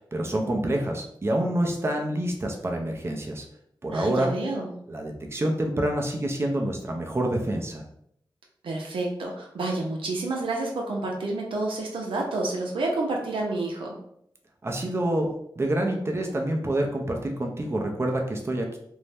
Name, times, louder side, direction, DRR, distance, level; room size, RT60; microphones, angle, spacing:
voice 1, 0.0-3.4 3.8-4.3 4.9-7.8 14.6-18.8, right 1 dB, 30° right, 1 dB, 0.5 m, -27 dB
voice 2, 3.9-4.7 8.6-13.9, right 2 dB, 90° right, 0 dB, 0.6 m, -29 dB
2.6 x 2.1 x 3.3 m, 0.71 s
cardioid pair, 55°, 9 cm